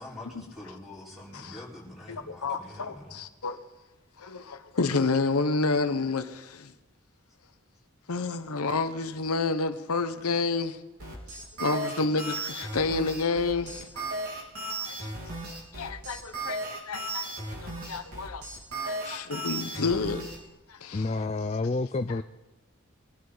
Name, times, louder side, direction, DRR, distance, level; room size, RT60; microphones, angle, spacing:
voice 1, 0.0-3.2, left 1 dB, ahead, 4.5 m, -45 dB
voice 2, 2.1-3.6 4.2-6.7 8.1-10.8 11.6-14.0 14.8-15.1 15.7-18.4 18.8-20.2 20.7-21.1, left 3 dB, 85° left, 0.9 m, -30 dB
sound 1, 11.0-20.4, right 2 dB, 90° right, 3.8 m, -35 dB
voice 3, 20.9-22.2, left 3 dB, 30° left, 0.4 m, -29 dB
22.5 x 12.5 x 3.9 m
head